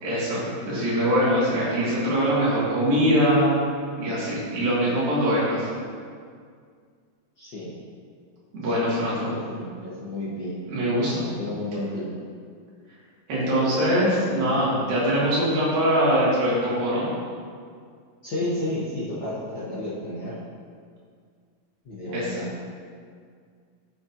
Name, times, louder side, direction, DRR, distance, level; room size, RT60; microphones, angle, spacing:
voice 1, 0.0-3.6 4.0-5.7 8.5-9.6 10.7-11.3 13.3-17.1 22.1-22.3, equal, 85° right, -8 dB, 4.3 m, -23 dB
voice 2, 7.4-7.7 8.8-10.6 11.4-12.2 18.2-20.3 21.8-22.5, left 1 dB, 75° left, -9 dB, 0.9 m, -32 dB
12.5 x 6.5 x 2.9 m, 2.1 s
omnidirectional pair, 4.0 m